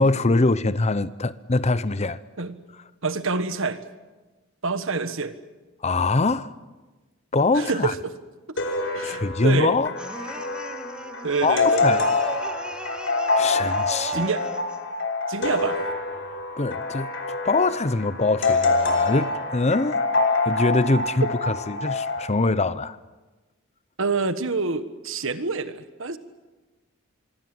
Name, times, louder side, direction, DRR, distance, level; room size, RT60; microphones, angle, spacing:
voice 1, 0.0-2.2 5.8-6.5 7.3-7.9 9.0-9.9 11.4-12.0 13.4-14.3 16.6-20.0 20.5-23.0, left 3 dB, 30° left, 0.7 m, -23 dB
voice 2, 3.0-3.8 4.6-5.3 7.5-8.1 8.9-9.8 11.2-12.1 14.1-14.5 15.3-15.8 24.0-26.2, right 4 dB, 65° right, 1.5 m, -27 dB
sound 1, 8.6-22.3, left 3 dB, 60° left, 3.3 m, -26 dB
sound 2, 10.0-14.9, equal, 5° right, 1.4 m, -39 dB
26.0 x 23.5 x 7.9 m
head